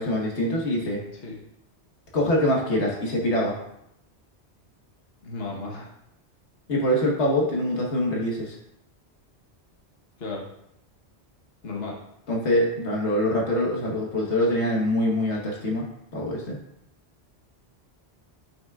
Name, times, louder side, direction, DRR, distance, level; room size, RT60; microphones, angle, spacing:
voice 1, 0.0-1.0 2.1-3.6 6.7-8.6 12.3-15.8 16.1-16.6, left 1 dB, 90° left, -1 dB, 1.5 m, -24 dB
voice 2, 5.2-5.9 10.2-10.5 11.6-12.0, left 3 dB, 65° left, -2 dB, 1.4 m, -34 dB
9.0 x 5.9 x 2.3 m, 0.79 s
omnidirectional pair, 1.1 m